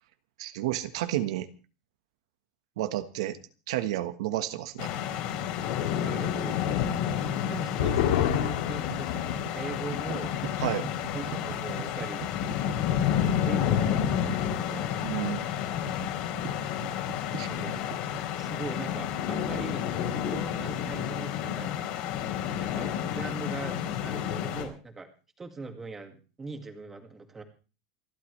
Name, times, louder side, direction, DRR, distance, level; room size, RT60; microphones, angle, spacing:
voice 1, 0.4-1.5 2.8-3.4 3.7-4.9 7.9-8.0 10.6-10.9 15.0-15.4 17.4-17.5, right 14 dB, 80° right, 9 dB, 1.4 m, -31 dB
sound 1, 4.8-24.7, left 9 dB, 50° left, 4.3 m, -30 dB
voice 2, 6.0-6.8 7.4-10.4 11.1-12.3 13.4-15.0 17.4-17.8 18.3-19.8 20.2-21.9 22.6-25.1 25.4-27.4, right 3 dB, 10° right, 5 dB, 2.2 m, -41 dB
sound 2, 7.2-14.1 14.4-14.5 14.9-15.4, left 10 dB, 80° left, 2.6 m, -33 dB
sound 3, 8.3-16.1 16.5-18.2, right 12 dB, 45° right, 2.4 m, -40 dB
28.5 x 12.0 x 3.3 m, 0.36 s
supercardioid pair, 175°, 3 cm